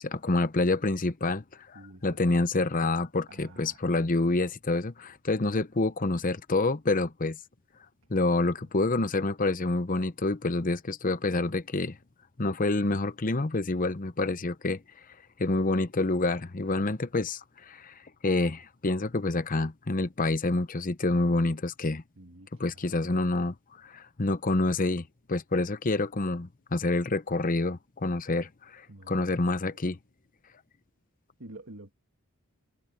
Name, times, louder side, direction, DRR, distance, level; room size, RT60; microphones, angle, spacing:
voice 1, 0.0-7.4 8.1-12.0 12.4-14.8 15.4-17.9 18.2-22.0 22.6-30.0, left 2 dB, 35° left, 0.8 m, -28 dB
voice 2, 1.7-2.2 3.3-4.5 8.1-8.7 22.2-23.2 28.9-29.2 29.7-29.8 31.4-31.9, right 2 dB, 60° right, 1.8 m, -50 dB
head